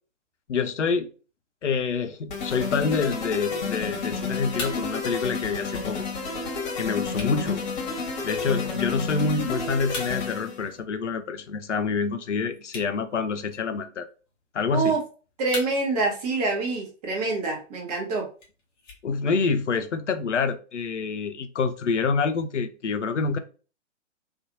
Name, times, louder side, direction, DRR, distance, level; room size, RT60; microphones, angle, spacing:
voice 1, 0.5-1.1 1.6-6.1 6.8-7.6 8.2-14.1 14.5-15.0 19.0-23.4, left 5 dB, 75° left, 0.5 m, -27 dB
sound 1, 2.3-10.6, left 4 dB, 40° left, 1.1 m, -30 dB
sound 2, 3.7-19.7, left 2 dB, 20° left, 0.6 m, -45 dB
voice 2, 14.7-15.0 15.4-18.3, right 3 dB, 35° right, 1.0 m, -26 dB
2.6 x 2.4 x 2.6 m
figure-of-eight pair, 120°, 36 cm